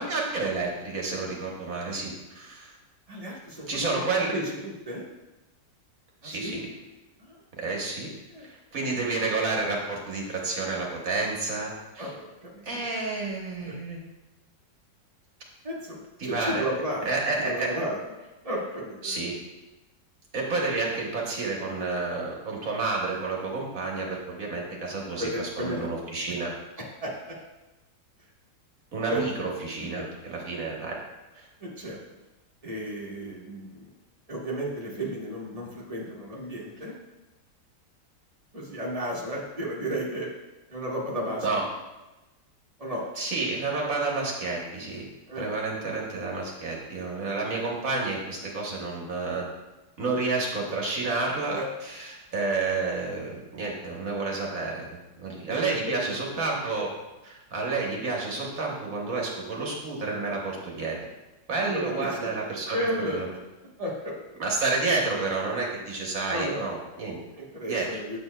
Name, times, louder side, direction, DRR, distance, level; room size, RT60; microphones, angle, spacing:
voice 1, 0.0-2.8 3.7-4.4 6.2-6.7 7.6-8.1 8.4-12.1 12.6-14.0 16.2-16.6 17.0-17.7 19.0-19.4 20.3-26.5 28.9-31.0 31.3-31.5 41.4-41.6 43.2-45.1 45.4-49.4 50.0-56.9 57.2-61.0 61.5-62.8 63.1-63.3 64.4-67.2 67.7-67.9, right 3 dB, 55° right, -2 dB, 1.4 m, -30 dB
voice 2, 3.1-5.1 6.2-6.6 7.2-7.3 8.3-8.5 12.0-12.9 13.6-13.7 15.6-17.1 17.4-18.0 18.4-19.2 25.2-26.0 27.0-27.4 29.1-29.2 30.0-30.1 31.6-32.0 32.6-33.9 34.3-37.0 38.5-40.3 40.7-41.7 42.8-43.0 45.3-45.5 51.5-51.7 55.9-56.1 61.6-62.3 62.7-63.2 63.8-64.1 66.3-66.6 67.4-68.2, equal, 25° right, -4 dB, 1.0 m, -33 dB
7.1 x 6.9 x 2.2 m, 1.0 s
omnidirectional pair, 1.9 m